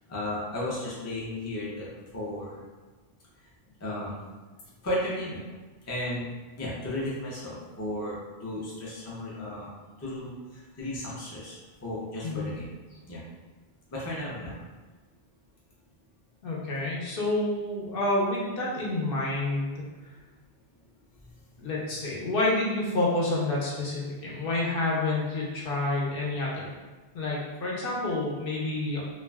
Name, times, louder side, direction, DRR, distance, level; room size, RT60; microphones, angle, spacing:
voice 1, 0.1-2.6 3.8-4.1 4.8-5.4 5.8-6.3 6.6-9.7 10.0-13.2 13.9-14.6, left 1 dB, 20° left, -6 dB, 0.4 m, -34 dB
voice 2, 16.4-19.8 21.6-26.7 27.1-29.0, left 2 dB, 60° left, -4 dB, 0.8 m, -28 dB
2.4 x 2.2 x 3.3 m, 1.3 s
omnidirectional pair, 1.1 m